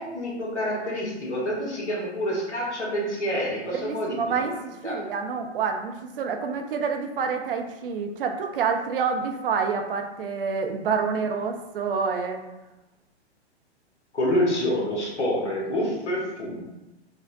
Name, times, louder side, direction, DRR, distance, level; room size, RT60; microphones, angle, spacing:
voice 1, 0.0-4.5 4.8-5.0 14.1-16.6, equal, 85° left, -4 dB, 1.3 m, -27 dB
voice 2, 3.7-12.4, right 5 dB, 55° right, 4 dB, 0.6 m, -28 dB
5.0 x 2.1 x 2.6 m, 0.99 s
figure-of-eight pair, 115°, 34 cm